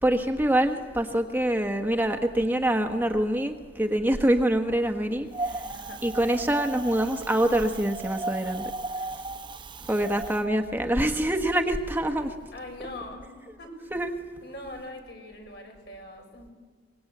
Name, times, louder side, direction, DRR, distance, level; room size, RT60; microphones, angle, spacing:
voice 1, 0.0-5.7 6.0-8.7 9.9-12.3 13.9-14.1, right 1 dB, 10° right, 4 dB, 1.2 m, -25 dB
Wind, 5.3-10.4, right 2 dB, 25° right, 0.7 m, -36 dB
voice 2, 5.6-6.0 12.5-13.3 13.6-13.9 14.4-16.5, left 1 dB, 65° left, 2 dB, 6.1 m, -42 dB
24.0 x 21.5 x 8.5 m, 1.5 s
head